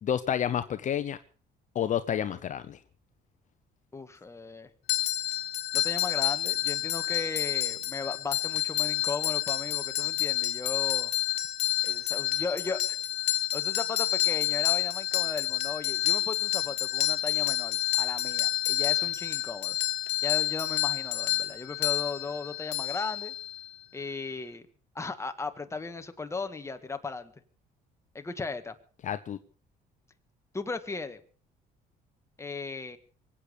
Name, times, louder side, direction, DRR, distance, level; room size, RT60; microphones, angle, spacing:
voice 1, 0.0-1.2 1.7-2.8 29.0-29.4, left 9 dB, 45° left, 11 dB, 0.8 m, -29 dB
voice 2, 3.9-4.7 5.7-11.1 11.8-13.0 13.5-19.8 20.2-23.3 23.9-24.6 24.9-27.3 28.1-28.7 30.5-31.2 32.4-33.0, left 4 dB, 15° left, 8 dB, 1.7 m, -36 dB
sound 1, 4.9-23.7, left 15 dB, 75° left, 1.7 m, -29 dB
24.0 x 8.5 x 6.7 m, 0.43 s
cardioid pair, 110°, 17 cm